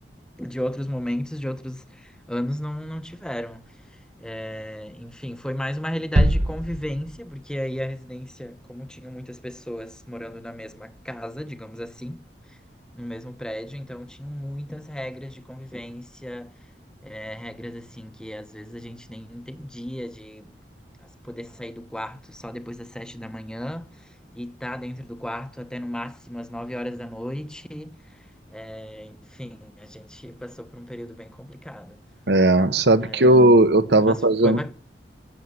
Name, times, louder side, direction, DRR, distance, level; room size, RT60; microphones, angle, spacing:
voice 1, 0.4-3.6 4.2-12.2 12.9-16.5 17.0-20.5 21.2-23.9 24.3-27.9 28.5-32.0 33.0-33.5 34.0-34.7, equal, 5° left, 0.9 m, -34 dB
sound 1, 6.2-7.6, right 1 dB, 40° right, 1.0 m, -23 dB
voice 2, 32.3-34.6, right 1 dB, 75° right, 1.1 m, -16 dB
13.0 x 7.9 x 9.6 m
head